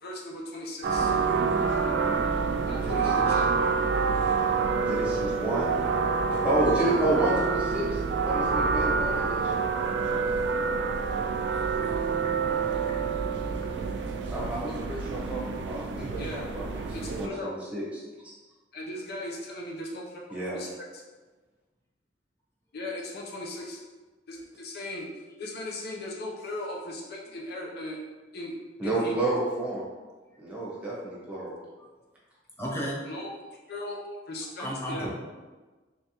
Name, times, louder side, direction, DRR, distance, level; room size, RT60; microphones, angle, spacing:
voice 1, 0.0-1.1 2.7-3.5 16.2-16.5 16.9-17.6 18.7-21.0 22.7-23.8 24.3-25.1 25.4-28.0 28.3-28.5 28.8-29.2 33.1-33.3 33.7-34.0 34.3-35.1, left 1 dB, 60° left, -1 dB, 0.5 m, -38 dB
sound 1, 0.8-17.3, right 5 dB, 70° right, 0.4 m, -27 dB
voice 2, 2.8-3.3 4.8-5.8 6.4-9.5 14.3-18.3 20.3-20.6 28.8-29.9 30.4-31.6, right 1 dB, 10° right, -7 dB, 1.0 m, -30 dB
voice 3, 32.6-33.0 34.6-35.1, equal, 15° left, -4 dB, 0.7 m, -32 dB
3.4 x 3.2 x 2.8 m, 1.3 s
head